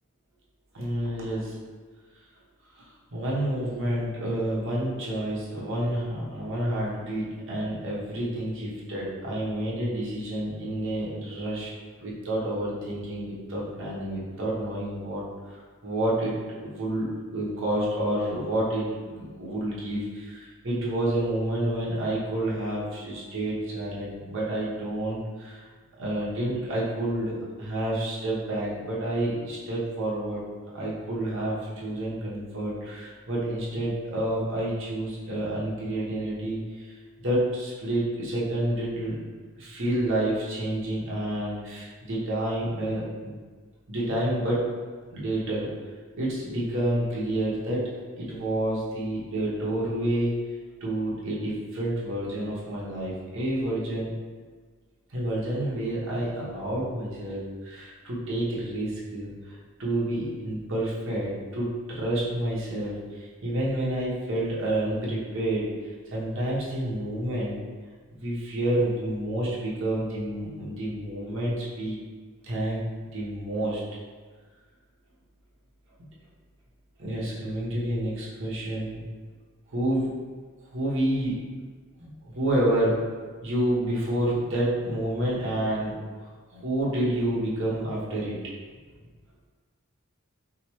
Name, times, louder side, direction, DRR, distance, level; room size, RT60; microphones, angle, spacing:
voice 1, 0.7-1.6 2.8-2.9 3.1-11.7 12.0-15.6 15.8-25.7 26.0-30.4 30.7-36.9 37.2-39.3 39.6-43.3 43.9-44.6 45.1-45.7 46.1-47.8 48.2-50.3 50.8-54.1 55.1-65.7 66.1-67.6 68.2-72.0 72.4-72.8 73.1-73.8 77.0-79.0 79.7-80.1 80.7-81.4 82.0-83.0 83.4-86.0 86.5-88.4, right 1 dB, 65° right, -6 dB, 1.1 m, -29 dB
5.0 x 2.1 x 3.0 m, 1.4 s
head